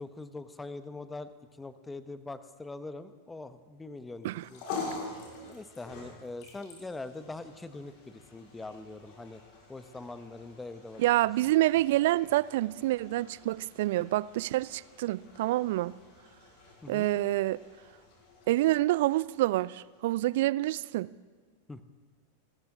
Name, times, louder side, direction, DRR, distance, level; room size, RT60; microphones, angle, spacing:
voice 1, 0.0-1.3 1.6-4.6 5.4-9.4 9.7-11.0 16.8-17.1 21.7-21.8, left 2 dB, 10° left, 13 dB, 0.9 m, -42 dB
sound 1, 4.2-20.7, left 4 dB, 45° left, 4.7 m, -47 dB
voice 2, 11.0-15.9 16.9-17.6 18.5-21.1, right 16 dB, 55° right, 20 dB, 0.4 m, -27 dB
28.0 x 13.0 x 3.8 m, 1.5 s
figure-of-eight pair, 90°, 0 cm